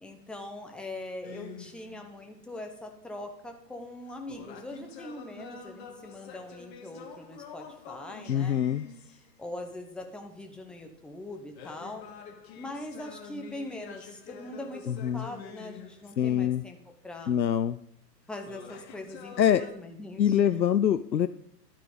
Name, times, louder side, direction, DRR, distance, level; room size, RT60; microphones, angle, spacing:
voice 1, 0.0-8.6 9.4-12.1 12.6-16.8 17.0-17.3 18.3-20.7, left 1 dB, ahead, 3 dB, 0.9 m, -42 dB
sound 1, 1.2-2.1 4.1-9.6 11.6-16.5 18.4-19.7, left 6 dB, 40° left, 2.2 m, -47 dB
voice 2, 8.3-8.9 14.9-15.3 16.2-16.6 17.3-17.8 19.4-19.6 20.2-21.3, left 9 dB, 90° left, 12 dB, 0.7 m, -24 dB
12.0 x 9.3 x 5.0 m, 0.68 s
figure-of-eight pair, 125°, 50 cm